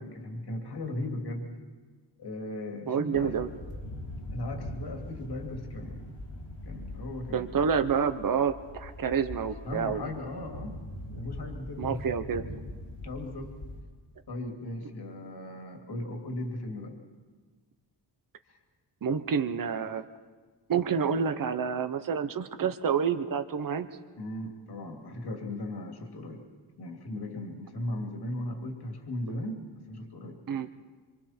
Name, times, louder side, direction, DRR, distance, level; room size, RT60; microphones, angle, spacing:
voice 1, 0.0-1.5 2.2-3.4 4.3-6.0 6.4-7.6 9.6-12.0 13.0-13.5 14.3-17.0 24.2-26.4 26.8-30.4, left 1 dB, 60° left, 2 dB, 2.6 m, -37 dB
voice 2, 2.9-3.5 7.3-10.0 11.8-12.4 19.0-20.0 20.7-23.9 30.5-30.7, right 7 dB, 45° right, 10 dB, 0.9 m, -28 dB
sound 1, 3.1-13.8, left 1 dB, 90° left, 3.6 m, -42 dB
26.0 x 25.0 x 4.4 m, 1.4 s
wide cardioid pair, 125°, 45 cm